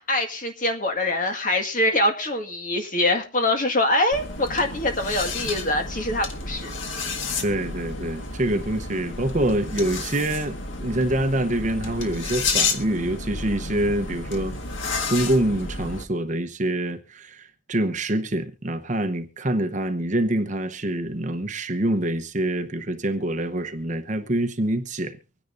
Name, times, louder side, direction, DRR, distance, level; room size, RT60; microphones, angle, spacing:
voice 1, 0.0-6.7, left 1 dB, 40° left, 1.9 m, -24 dB
sound 1, 4.1-16.0, left 3 dB, 70° left, 1.7 m, -31 dB
voice 2, 7.4-14.5 15.1-25.2, right 1 dB, 40° right, 0.9 m, -25 dB
24.5 x 10.0 x 2.6 m
head